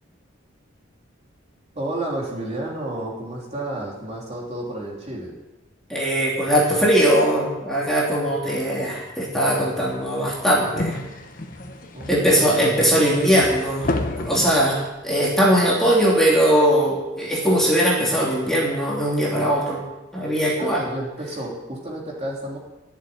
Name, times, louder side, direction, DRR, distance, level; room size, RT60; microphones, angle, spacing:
voice 1, 1.8-5.4 11.9-12.9 20.6-22.6, right 1 dB, 35° right, -3 dB, 3.5 m, -31 dB
voice 2, 5.9-11.0 12.1-19.8 20.1-20.8, equal, ahead, -5 dB, 3.1 m, -20 dB
sound 1, 9.9-14.9, left 2 dB, 45° left, 1.2 m, -32 dB
13.5 x 7.3 x 9.6 m, 1.0 s
head